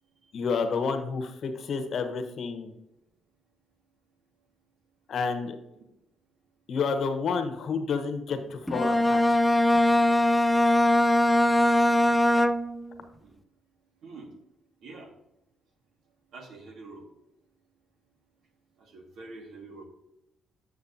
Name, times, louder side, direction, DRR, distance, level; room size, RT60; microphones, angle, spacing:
voice 1, 0.3-2.7 5.1-5.6 6.7-9.4, left 5 dB, 60° left, 7 dB, 0.9 m, -30 dB
Bowed string instrument, 8.7-12.9, left 1 dB, 5° left, 0.3 m, -21 dB
voice 2, 16.3-17.0 18.8-19.9, right 3 dB, 75° right, 2 dB, 1.7 m, -45 dB
8.5 x 6.5 x 2.7 m, 0.86 s
cardioid pair, 90°, 0 cm